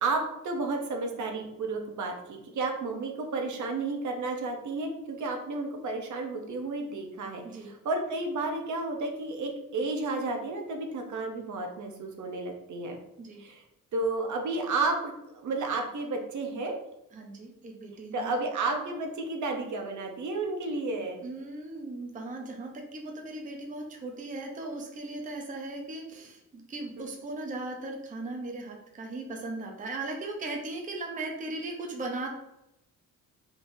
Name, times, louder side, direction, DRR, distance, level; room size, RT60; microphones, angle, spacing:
voice 1, 0.0-13.0 13.4-13.6 13.9-16.8 18.1-21.2, right 3 dB, 65° right, 3 dB, 0.8 m, -32 dB
voice 2, 17.1-18.3 21.2-32.3, right 2 dB, 25° right, 1 dB, 0.6 m, -38 dB
4.7 x 3.8 x 2.6 m, 0.85 s
wide cardioid pair, 155°, 33 cm